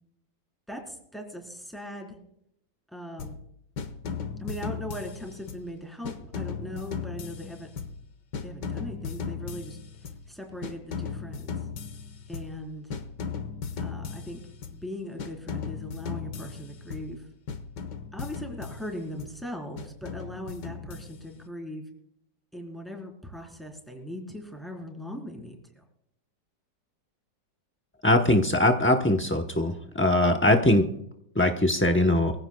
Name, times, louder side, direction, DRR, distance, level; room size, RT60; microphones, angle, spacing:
voice 1, 0.7-2.2 2.9-3.4 4.4-7.7 8.4-11.5 12.3-12.9 13.8-14.4 14.7-17.3 18.1-21.9 22.5-25.8, equal, ahead, 1 dB, 3.8 m, -39 dB
sound 1, 3.2-3.5 3.8-5.7 6.0-8.1 8.3-10.3 10.6-12.6 12.9-14.9 15.2-17.2 17.5-19.4 19.8-21.4, left 6 dB, 75° left, 1.8 m, -37 dB
voice 2, 28.0-30.9 31.4-32.3, left 1 dB, 15° left, 3 dB, 0.4 m, -21 dB
23.5 x 16.0 x 2.3 m, 0.74 s
omnidirectional pair, 1.9 m